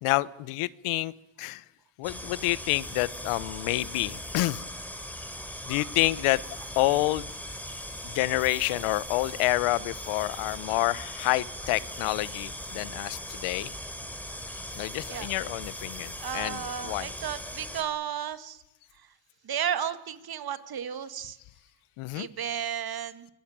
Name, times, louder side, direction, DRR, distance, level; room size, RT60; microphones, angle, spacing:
voice 1, 0.0-1.1 1.4-1.6 2.0-4.6 5.7-6.4 6.8-7.3 8.1-13.7 14.8-17.1 22.0-22.3, left 19 dB, 80° left, 19 dB, 1.0 m, -28 dB
sound 1, 2.0-17.8, equal, 5° left, 4.3 m, -39 dB
voice 2, 16.2-18.6 18.9-19.1 19.4-21.4 22.1-23.3, right 9 dB, 45° right, 11 dB, 2.0 m, -34 dB
26.0 x 20.0 x 8.9 m, 0.89 s
cardioid pair, 95°, 50 cm